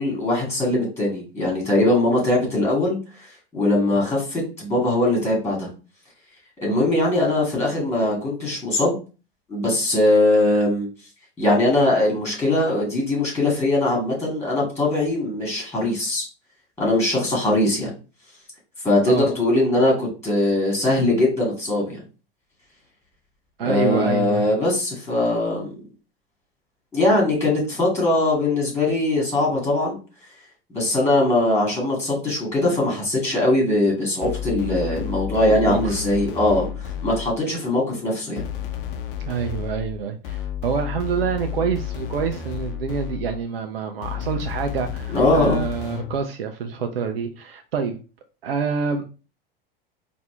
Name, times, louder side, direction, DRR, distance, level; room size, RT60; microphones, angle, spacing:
voice 1, 0.0-3.0 3.5-5.7 6.6-9.0 9.5-10.9 11.4-16.2 16.8-17.9 18.8-22.0 23.6-25.7 26.9-30.0 30.7-38.4 45.1-45.6, left 2 dB, 10° left, 2.1 m, -21 dB
voice 2, 23.6-24.5 35.4-36.0 39.3-48.0 48.4-49.1, right 6 dB, 75° right, 0.5 m, -27 dB
sound 1, 34.2-37.5 38.4-43.5 44.0-46.2, left 10 dB, 60° left, 0.7 m, -31 dB
4.1 x 2.6 x 3.2 m
figure-of-eight pair, 85°, 30 cm